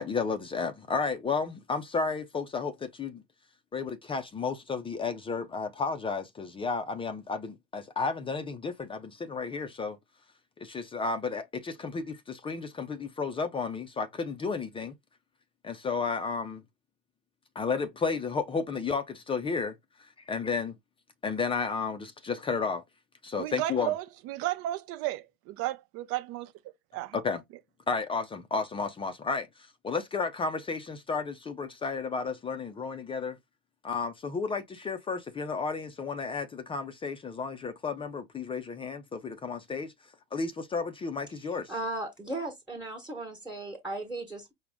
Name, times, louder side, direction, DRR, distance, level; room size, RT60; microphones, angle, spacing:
voice 1, 0.0-3.2 3.7-10.0 10.6-14.9 15.6-16.6 17.6-19.7 20.3-20.8 21.2-22.8 23.2-23.9 27.1-27.4 27.9-29.5 29.8-33.4 33.8-39.9 40.3-41.7, left 4 dB, 15° left, 0.5 m, -32 dB
voice 2, 23.3-26.5 26.9-27.2, right 15 dB, 45° right, 0.6 m, -33 dB
voice 3, 41.5-44.5, right 2 dB, 5° right, 1.2 m, -36 dB
4.7 x 2.1 x 3.5 m
hypercardioid pair, 100°, 32 cm